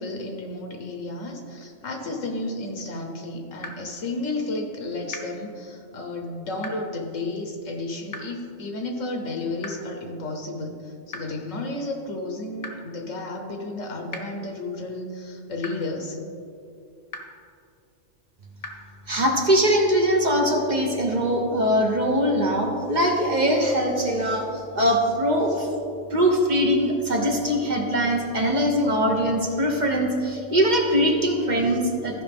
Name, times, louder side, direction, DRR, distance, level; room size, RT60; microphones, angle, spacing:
voice 1, 0.0-16.2, left 2 dB, 75° left, 2 dB, 1.3 m, -32 dB
sound 1, 3.6-3.7 5.1-5.2 6.6-6.7 8.1-8.2 9.6-9.7 11.1-11.2 12.6-12.7 14.1-14.2 15.6-15.7 17.1-17.2 18.6-18.7, left 4 dB, 50° left, 1.1 m, -35 dB
voice 2, 19.1-25.7 26.1-32.2, equal, 40° right, 1 dB, 1.0 m, -22 dB
14.5 x 5.4 x 3.5 m, 2.5 s
omnidirectional pair, 1.3 m